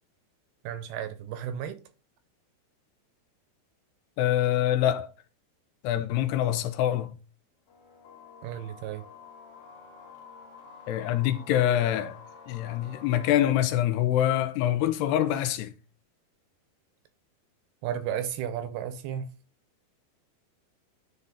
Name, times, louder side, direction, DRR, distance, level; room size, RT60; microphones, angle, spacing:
voice 1, 0.6-1.8 8.4-9.0 17.8-19.3, right 9 dB, 80° right, 2.7 m, -33 dB
voice 2, 4.2-5.1 5.8-7.1 10.9-12.2 12.5-15.7, left 11 dB, 85° left, 2.7 m, -25 dB
sound 1, 7.7-13.5, left 5 dB, 50° left, 1.9 m, -49 dB
11.0 x 4.1 x 3.6 m
omnidirectional pair, 4.9 m